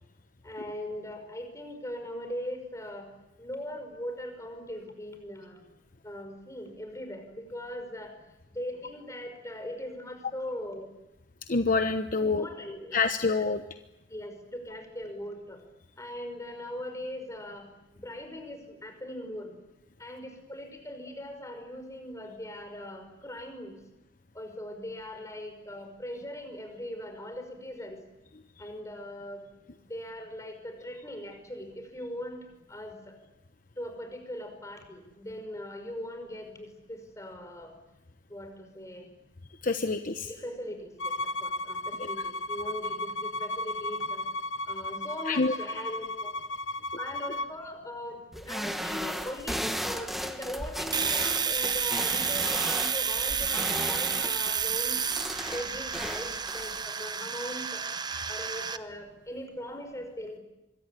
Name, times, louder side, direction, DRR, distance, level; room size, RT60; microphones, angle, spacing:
voice 1, 0.4-3.1 3.4-5.7 6.0-8.1 8.5-10.9 12.2-13.0 13.3-13.4 14.1-15.6 16.0-19.6 20.0-23.8 24.3-28.0 28.6-29.5 29.9-33.2 33.8-37.7 38.3-39.1 40.2-44.2 44.7-46.4 47.0-57.9 58.3-60.4, left 1 dB, 15° left, 6 dB, 5.7 m, -40 dB
voice 2, 11.5-12.4 12.9-13.6 39.6-40.3 45.3-45.5, left 3 dB, 45° left, 8 dB, 1.0 m, -26 dB
Bowed string instrument, 41.0-47.5, left 1 dB, 80° left, 1.0 m, -34 dB
sound 1, 48.3-56.8, equal, ahead, 1.6 m, -36 dB
Domestic sounds home sounds, 50.9-58.8, right 6 dB, 20° right, 0.9 m, -30 dB
26.0 x 23.0 x 9.9 m, 0.95 s
head